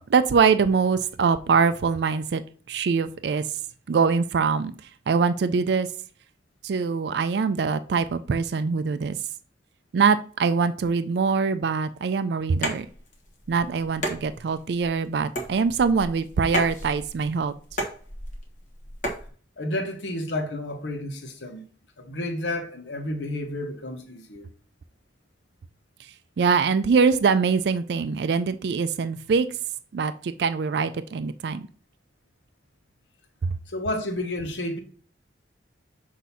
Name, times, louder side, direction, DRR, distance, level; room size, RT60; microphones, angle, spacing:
voice 1, 0.1-2.4 2.7-3.4 3.9-4.7 5.1-5.9 6.6-9.2 9.9-12.9 13.5-17.5 26.4-29.5 29.9-31.7 33.4-33.6, right 5 dB, 65° right, 0.4 m, -23 dB
sound 1, 12.6-19.3, equal, 45° left, 1.2 m, -34 dB
voice 2, 19.6-21.7 22.0-24.5 33.7-34.8, left 1 dB, 75° left, 1.1 m, -31 dB
6.2 x 2.7 x 5.5 m
head